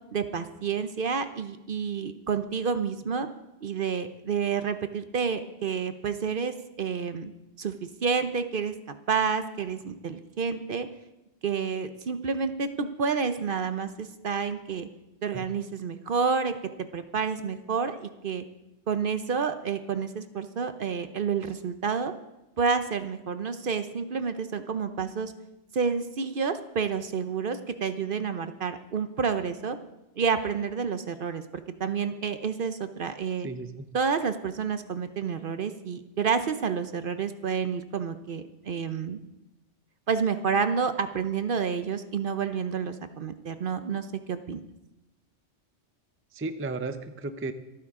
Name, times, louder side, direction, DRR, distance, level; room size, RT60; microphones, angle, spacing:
voice 1, 0.1-3.3 3.6-7.3 7.6-8.7 9.1-10.9 11.4-14.9 15.2-16.6 16.9-18.4 18.9-22.1 22.6-25.3 25.7-29.8 30.2-31.4 31.8-33.5 33.9-39.2 40.1-44.6, right 6 dB, 55° right, 10 dB, 0.8 m, -29 dB
voice 2, 33.4-33.9 46.3-47.5, right 3 dB, 15° right, 10 dB, 0.5 m, -34 dB
26.5 x 9.3 x 3.7 m, 0.96 s
omnidirectional pair, 1.2 m